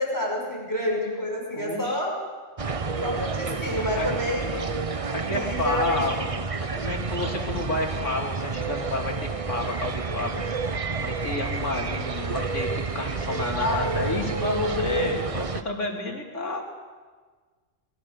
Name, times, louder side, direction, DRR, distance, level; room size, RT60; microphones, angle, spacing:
voice 1, 0.0-2.2 3.0-4.5 5.1-6.2 13.5-15.1, left 1 dB, 15° left, -1 dB, 5.8 m, -29 dB
voice 2, 1.5-2.0 3.9-4.1 5.1-6.2 6.7-16.6, left 2 dB, 75° left, 1 dB, 3.0 m, -30 dB
sound 1, 2.6-15.6, right 4 dB, 30° right, 0.8 m, -30 dB
25.5 x 21.5 x 6.8 m, 1.4 s
omnidirectional pair, 1.3 m